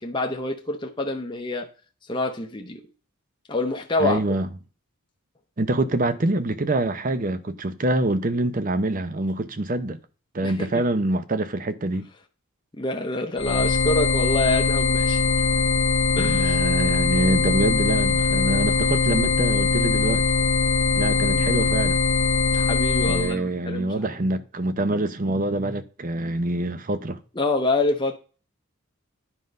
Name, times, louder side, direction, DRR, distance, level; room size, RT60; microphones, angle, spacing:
voice 1, 0.0-1.7 2.1-2.8 3.5-4.2 10.4-10.8 12.7-15.5 16.2-16.6 21.3-21.5 22.5-23.9 27.4-28.2, left 2 dB, 20° left, 0.8 m, -27 dB
voice 2, 4.0-4.5 5.6-10.0 10.3-12.1 16.2-20.2 20.9-22.0 23.0-27.2, right 2 dB, 40° right, 0.7 m, -25 dB
sound 1, 13.4-23.3, left 4 dB, 65° left, 0.9 m, -21 dB
10.0 x 3.9 x 5.3 m
head